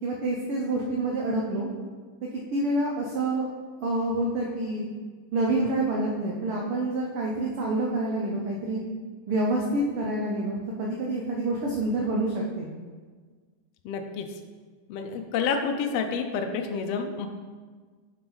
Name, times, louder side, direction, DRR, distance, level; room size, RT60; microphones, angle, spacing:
voice 1, 0.0-1.7 2.2-3.5 3.8-4.9 5.3-8.8 9.3-12.7, right 2 dB, 85° right, -2 dB, 1.2 m, -27 dB
voice 2, 13.8-14.3 14.9-17.3, left 5 dB, 85° left, 5 dB, 1.4 m, -29 dB
8.0 x 4.9 x 3.9 m, 1.5 s
omnidirectional pair, 3.5 m